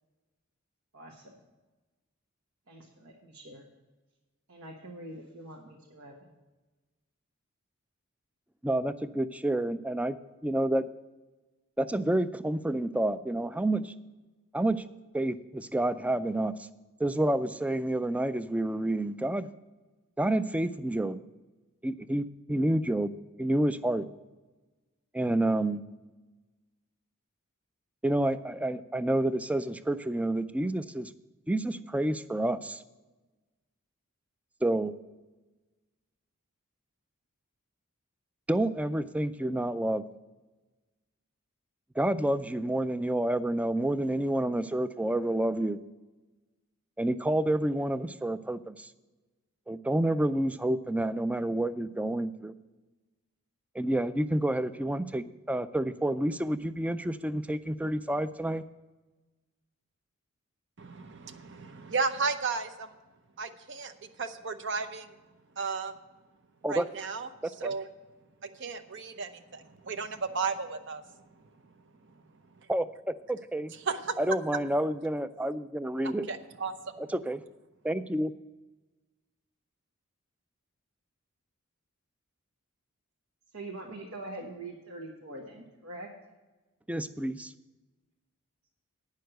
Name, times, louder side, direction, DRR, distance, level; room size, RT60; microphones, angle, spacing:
voice 1, 0.9-1.4 2.7-3.6 4.5-6.3 83.5-86.1, right 2 dB, 80° right, -1 dB, 1.5 m, -44 dB
voice 2, 8.6-10.9 11.8-13.9 14.5-14.8 15.1-16.7 17.0-19.5 20.2-21.2 21.8-23.1 23.4-24.1 25.1-25.8 28.0-31.1 31.5-32.8 34.6-34.9 38.5-40.0 42.0-45.8 47.0-48.9 49.7-52.5 53.7-58.6 66.6-66.8 67.4-67.7 72.7-73.7 74.2-76.3 77.0-77.4 77.8-78.3 86.9-87.5, right 1 dB, 5° right, 13 dB, 0.3 m, -29 dB
voice 3, 60.8-62.9 63.4-63.9 64.2-65.1 65.6-65.9 66.7-67.3 67.6-67.9 68.4-71.0 73.8-74.2 76.3-76.9, right 4 dB, 55° right, 9 dB, 0.7 m, -34 dB
9.4 x 6.6 x 7.8 m, 1.2 s
head